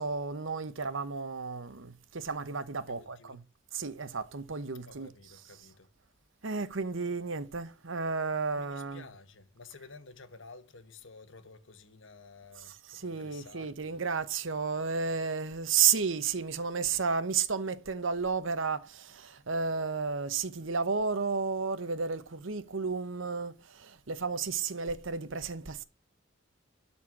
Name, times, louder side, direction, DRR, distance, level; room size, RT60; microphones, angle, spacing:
voice 1, 0.0-3.4 3.7-5.3 6.4-9.1 12.6-25.8, right 5 dB, 70° right, 1.0 m, -32 dB
voice 2, 2.8-3.4 4.8-5.9 8.5-13.9, left 3 dB, 70° left, 1.3 m, -52 dB
12.5 x 4.5 x 7.3 m
head